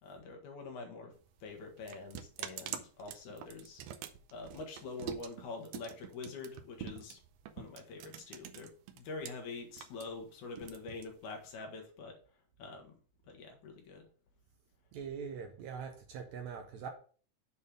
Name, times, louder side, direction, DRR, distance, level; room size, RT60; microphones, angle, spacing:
voice 1, 0.0-1.1 1.4-3.8 4.3-7.2 7.6-12.2 12.6-13.0 13.3-14.1, left 4 dB, 70° left, 3 dB, 2.7 m, -45 dB
sound 1, 1.1-9.3 9.6-11.5, right 10 dB, 90° right, 1.4 m, -46 dB
voice 2, 14.9-16.9, right 6 dB, 75° right, 5 dB, 1.8 m, -42 dB
7.1 x 4.3 x 5.0 m, 0.42 s
omnidirectional pair, 3.8 m